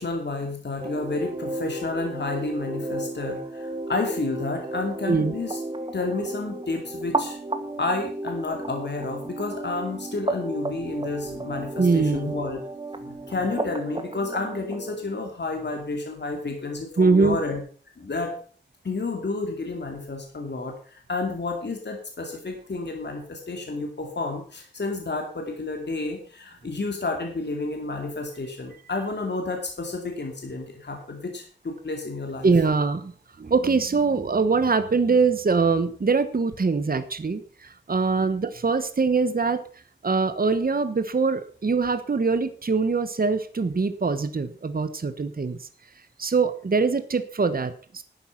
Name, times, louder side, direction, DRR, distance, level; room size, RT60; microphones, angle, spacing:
voice 1, 0.0-5.6 5.9-7.4 7.8-12.6 13.0-17.6 18.0-18.3 18.8-32.5, left 3 dB, 65° left, 2 dB, 2.6 m, -30 dB
sound 1, 0.8-15.0, right 2 dB, 30° right, 1.5 m, -33 dB
voice 2, 11.8-12.3 17.0-17.4 32.4-33.1 33.4-39.6 40.0-45.6 46.2-48.0, right 4 dB, 50° right, 11 dB, 1.1 m, -23 dB
11.5 x 9.4 x 5.8 m, 0.43 s
wide cardioid pair, 90°, 19 cm